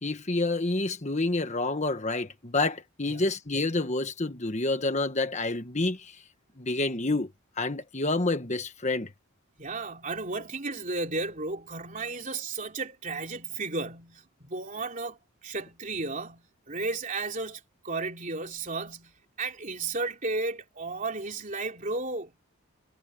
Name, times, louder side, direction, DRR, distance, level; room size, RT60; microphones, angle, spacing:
voice 1, 0.0-6.2 6.6-7.3 7.6-9.1, left 2 dB, 30° left, 1.3 m, -28 dB
voice 2, 9.6-15.2 15.4-22.3, right 3 dB, 35° right, 3.6 m, -34 dB
head